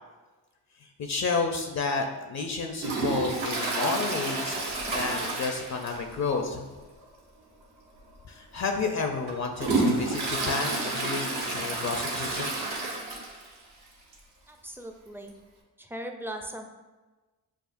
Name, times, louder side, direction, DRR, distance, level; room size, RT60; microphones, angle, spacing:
voice 1, 0.8-6.9 8.3-12.5, left 4 dB, 45° left, 4 dB, 0.5 m, -31 dB
Toilet flush, 2.8-6.2 6.5-6.6 7.0-7.1 8.0-8.1 8.6-13.5 13.9-14.0 14.1-14.2 15.3-15.4, right 3 dB, 70° right, 1.3 m, -30 dB
voice 2, 14.5-15.3 15.8-16.6, right 1 dB, 5° right, 4 dB, 0.4 m, -39 dB
7.0 x 2.4 x 2.5 m, 1.2 s
supercardioid pair, 60°, 41 cm